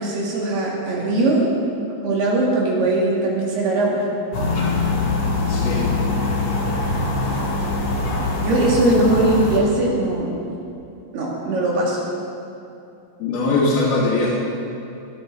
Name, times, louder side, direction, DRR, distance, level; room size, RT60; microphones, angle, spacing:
voice 1, 0.0-1.5 2.0-4.0 8.4-10.3 11.1-12.0, right 2 dB, 80° right, -4 dB, 4.6 m, -20 dB
sound 1, 4.3-9.6, left 3 dB, 45° left, 3.2 m, -23 dB
voice 2, 5.5-5.8 13.2-14.3, left 3 dB, 70° left, -7 dB, 4.1 m, -20 dB
19.0 x 12.5 x 4.1 m, 2.6 s
omnidirectional pair, 4.6 m